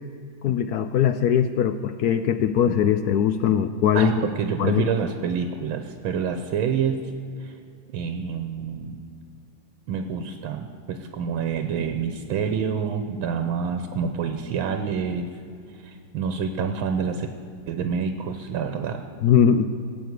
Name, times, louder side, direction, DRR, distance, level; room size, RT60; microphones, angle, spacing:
voice 1, 0.4-4.1 4.6-4.8 19.2-19.7, left 8 dB, 75° left, 11 dB, 0.9 m, -21 dB
voice 2, 3.9-7.0 7.4-7.5 7.9-9.0 9.9-15.3 15.8-17.3 17.7-19.1, right 6 dB, 85° right, 7 dB, 1.7 m, -27 dB
16.5 x 7.8 x 9.5 m, 2.6 s
omnidirectional pair, 2.2 m